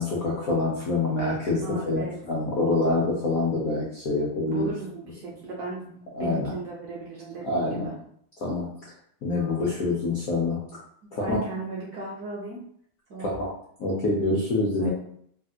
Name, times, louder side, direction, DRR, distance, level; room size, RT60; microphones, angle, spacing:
voice 1, 0.0-4.7 6.1-6.5 7.4-7.9 8.4-8.9 9.2-10.6 11.1-11.4 13.2-13.5 13.8-14.9, left 2 dB, 75° left, -4 dB, 0.8 m, -26 dB
voice 2, 1.6-2.2 4.4-7.9 11.0-12.6 13.1-13.3 14.8-14.9, right 2 dB, 70° right, -4 dB, 0.9 m, -36 dB
3.4 x 2.8 x 2.3 m, 0.67 s
omnidirectional pair, 2.3 m